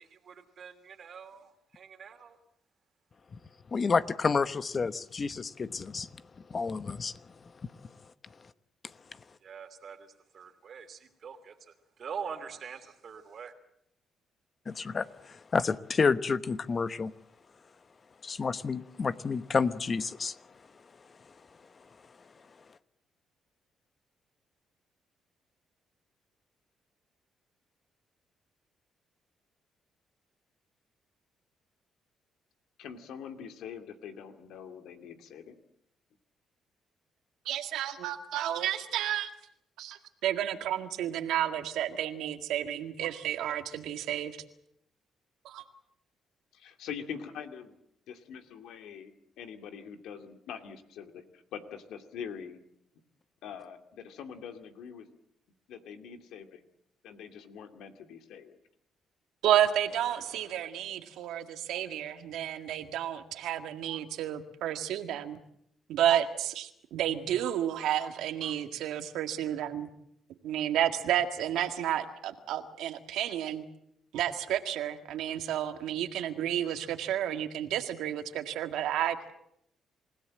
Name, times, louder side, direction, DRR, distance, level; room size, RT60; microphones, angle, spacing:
voice 1, 0.0-2.4 9.4-13.5, right 7 dB, 55° right, 8 dB, 2.9 m, -44 dB
voice 2, 3.7-6.1 6.5-7.2 14.7-17.1 18.2-20.4, left 5 dB, 40° left, 13 dB, 1.0 m, -29 dB
voice 3, 32.8-35.6 46.5-47.8 48.1-52.6 53.4-55.1 55.7-56.6 57.0-58.6, left 7 dB, 85° left, 7 dB, 2.5 m, -44 dB
voice 4, 37.5-39.3 39.8-44.4 45.4-45.6 59.4-65.4 65.9-69.9 70.4-73.6 74.1-79.3, right 11 dB, 85° right, 7 dB, 1.9 m, -31 dB
28.0 x 17.0 x 7.7 m, 0.75 s
cardioid pair, 90°, 0 cm